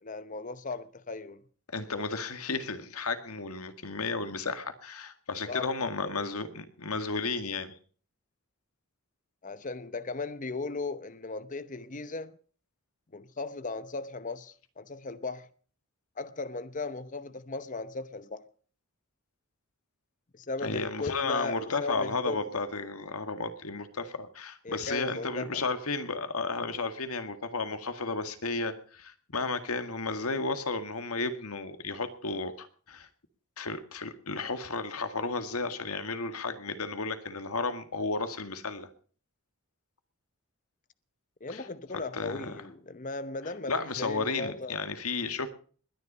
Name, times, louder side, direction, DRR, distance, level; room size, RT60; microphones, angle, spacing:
voice 1, 0.0-1.4 5.5-5.7 6.0-6.3 9.4-12.3 13.1-15.5 16.2-18.4 20.3-22.6 24.6-25.7 41.4-44.8, left 3 dB, 35° left, 0.8 m, -37 dB
voice 2, 1.7-7.8 20.6-33.1 33.6-38.9 41.5-41.6 41.9-42.5 43.7-45.5, left 3 dB, 80° left, 2.0 m, -33 dB
21.0 x 10.5 x 5.5 m
head